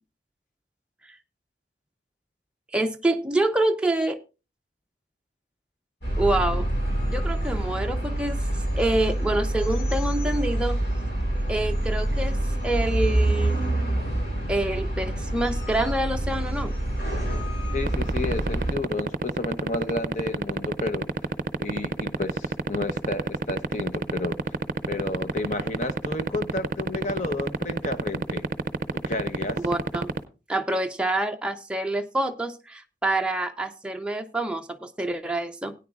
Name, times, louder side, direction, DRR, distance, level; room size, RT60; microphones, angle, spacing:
voice 1, 2.7-4.2 6.2-6.7 7.1-8.4 8.7-10.8 11.5-13.6 14.5-16.7 29.6-30.1 30.5-35.7, right 1 dB, 5° right, 0.6 m, -26 dB
sound 1, 6.0-18.7, right 1 dB, 60° left, 4.6 m, -26 dB
voice 2, 17.7-21.1 21.6-24.6 24.9-28.5 28.9-29.6, left 2 dB, 45° left, 0.8 m, -31 dB
sound 2, 17.9-30.2, right 3 dB, 50° right, 0.6 m, -24 dB
17.0 x 9.6 x 2.4 m
head